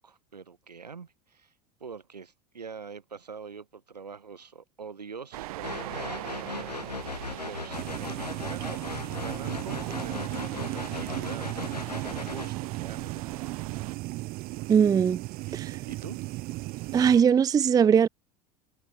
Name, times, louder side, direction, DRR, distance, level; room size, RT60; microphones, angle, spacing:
voice 1, 0.0-1.5 1.8-6.9 7.5-13.6 15.4-15.6 15.9-16.2, right 5 dB, 85° right, 6.5 m, -45 dB
sound 1, 5.3-14.0, right 18 dB, 65° right, 5.8 m, -41 dB
sound 2, 5.6-12.5, left 4 dB, 90° left, 3.2 m, -38 dB
sound 3, 7.7-17.2, right 20 dB, 50° right, 2.5 m, -36 dB
voice 2, 14.7-15.2 15.5-15.8 16.9-18.1, right 7 dB, 20° right, 0.5 m, -20 dB
figure-of-eight pair, 80°, 20 cm